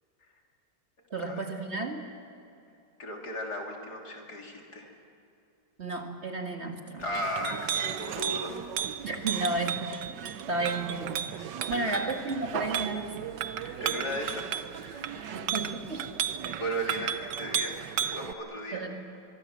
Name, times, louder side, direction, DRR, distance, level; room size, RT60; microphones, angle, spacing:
voice 1, 1.1-2.0 5.8-7.0 9.0-10.2 10.5-13.2 15.3-16.1 18.7-19.0, right 2 dB, 40° right, 3 dB, 2.0 m, -33 dB
voice 2, 3.0-4.9 7.0-8.7 9.5-9.6 11.7-12.0 13.5-15.4 16.6-18.9, equal, 65° left, 0 dB, 3.8 m, -36 dB
Chink clink, 7.0-18.3, right 9 dB, 80° right, 1.5 m, -34 dB
24.0 x 24.0 x 7.5 m, 2.6 s
omnidirectional pair, 1.9 m